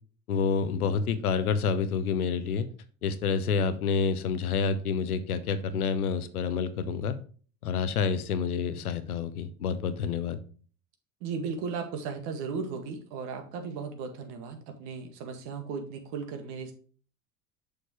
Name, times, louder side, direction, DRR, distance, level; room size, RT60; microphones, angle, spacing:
voice 1, 0.3-2.7 3.0-7.1 7.6-10.4, left 5 dB, 80° left, 12 dB, 0.9 m, -28 dB
voice 2, 11.2-16.7, right 5 dB, 60° right, 5 dB, 1.8 m, -36 dB
6.7 x 6.2 x 3.0 m, 0.41 s
hypercardioid pair, 75°, 43 cm